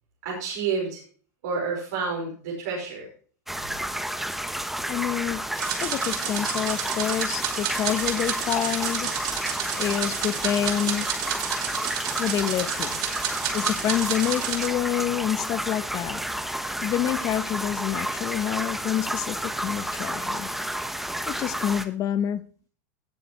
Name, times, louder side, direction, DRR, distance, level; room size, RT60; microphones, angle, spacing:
voice 1, 0.2-1.0 1.4-3.1, right 5 dB, 70° right, 5.2 m, -29 dB
sound 1, 3.5-21.9, right 1 dB, ahead, 1.1 m, -31 dB
voice 2, 4.9-5.4 5.8-9.1 9.8-11.1 12.2-13.0 13.5-16.2 16.8-20.5 21.3-22.4, left 11 dB, 40° left, 1.0 m, -27 dB
sound 2, 5.6-14.7, right 9 dB, 50° right, 2.7 m, -31 dB
Camera, 7.8-10.3 10.7-12.4 12.8-14.2 14.6-14.7 15.3-15.9 16.2-16.3 16.6-17.8 18.0-18.1, left 7 dB, 65° left, 6.3 m, -48 dB
18.5 x 7.0 x 3.1 m
hypercardioid pair, 115°, 9 cm